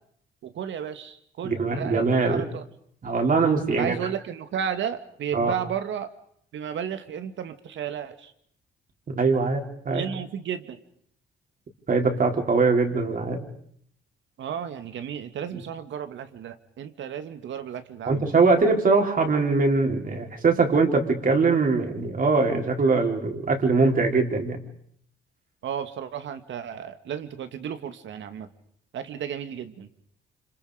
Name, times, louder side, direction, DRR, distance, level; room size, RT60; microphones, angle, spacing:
voice 1, 0.4-2.6 3.7-6.1 6.5-8.3 9.9-10.8 14.4-18.3 25.6-28.5 28.9-29.9, right 8 dB, 70° right, 9 dB, 2.1 m, -33 dB
voice 2, 1.4-2.5 3.0-3.9 5.3-5.5 9.1-10.0 11.9-13.4 18.1-24.6, right 4 dB, 45° right, 3 dB, 4.5 m, -22 dB
29.0 x 26.5 x 5.2 m, 0.66 s
cardioid pair, 90°, 20 cm